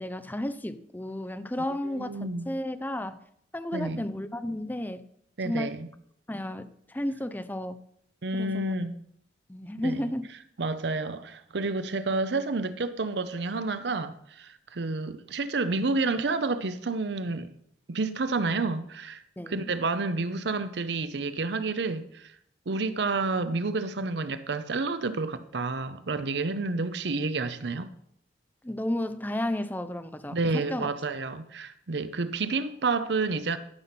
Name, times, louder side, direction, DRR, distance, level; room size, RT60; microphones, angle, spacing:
voice 1, 0.0-3.2 3.5-5.0 5.4-5.8 6.3-7.8 8.3-8.7 9.5-10.3 19.4-19.6 28.6-30.9, left 1 dB, 10° left, 0.6 m, -33 dB
voice 2, 1.8-2.5 3.7-4.0 5.4-5.9 8.2-9.0 9.8-10.1 10.6-17.5 17.9-22.3 22.7-27.9 30.3-33.6, right 3 dB, 70° right, 0.7 m, -30 dB
12.5 x 5.7 x 5.9 m
head